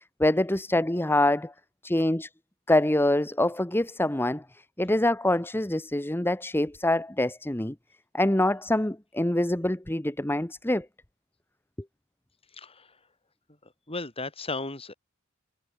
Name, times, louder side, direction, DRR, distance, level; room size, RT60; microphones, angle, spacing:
voice 1, 0.2-1.5 1.8-2.3 2.7-4.4 4.8-7.7 8.1-10.9, left 1 dB, 10° left, 1.2 m, -25 dB
voice 2, 12.5-13.0 13.6-14.9, left 3 dB, 30° left, 6.8 m, -36 dB
head